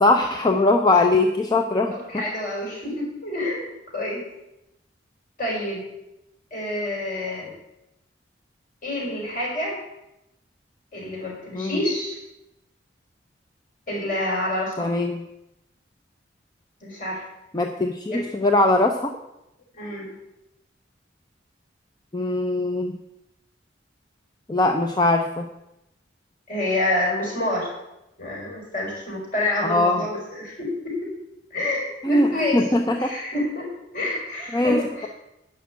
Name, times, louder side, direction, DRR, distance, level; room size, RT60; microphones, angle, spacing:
voice 1, 0.0-1.9 11.5-11.8 14.8-15.2 17.5-19.1 22.1-23.0 24.5-25.5 29.6-30.0 32.0-33.1 34.5-35.1, left 2 dB, 20° left, 5 dB, 0.6 m, -21 dB
voice 2, 1.9-3.7 3.9-4.2 5.4-5.8 6.5-7.5 8.8-9.8 10.9-12.2 13.9-14.9 16.8-17.2 18.1-18.2 19.7-20.1 26.5-27.7 28.2-31.1 31.5-32.6 33.0-33.7 33.9-35.1, left 1 dB, 50° left, -3 dB, 5.1 m, -28 dB
11.0 x 6.1 x 8.4 m, 0.88 s
head